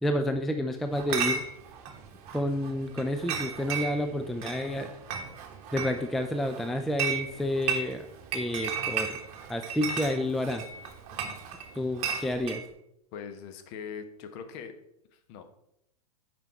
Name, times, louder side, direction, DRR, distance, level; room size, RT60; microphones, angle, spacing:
voice 1, 0.0-1.4 2.3-4.9 5.7-8.1 8.3-9.2 9.5-10.7 11.7-12.6, left 1 dB, ahead, 6 dB, 0.3 m, -30 dB
Chatter / Chink clink, 0.9-12.6, right 6 dB, 35° right, 1.2 m, -35 dB
voice 2, 13.1-14.7 15.1-15.4, left 7 dB, 40° left, 7 dB, 1.0 m, -41 dB
9.3 x 5.4 x 4.3 m, 0.79 s
figure-of-eight pair, 105°, 20 cm